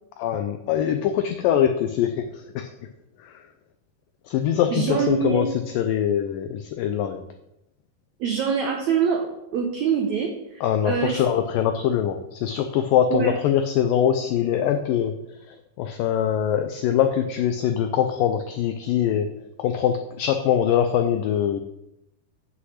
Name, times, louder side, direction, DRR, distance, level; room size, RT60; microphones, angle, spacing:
voice 1, 0.2-2.7 3.2-3.4 4.3-5.5 5.8-7.2 10.6-15.2 15.5-19.3 19.6-21.6, left 9 dB, 85° left, 7 dB, 1.9 m, -23 dB
voice 2, 4.7-5.5 8.2-9.3 9.5-11.2 13.1-13.4, right 7 dB, 85° right, 2 dB, 1.6 m, -24 dB
8.1 x 6.0 x 7.7 m, 0.86 s
omnidirectional pair, 4.7 m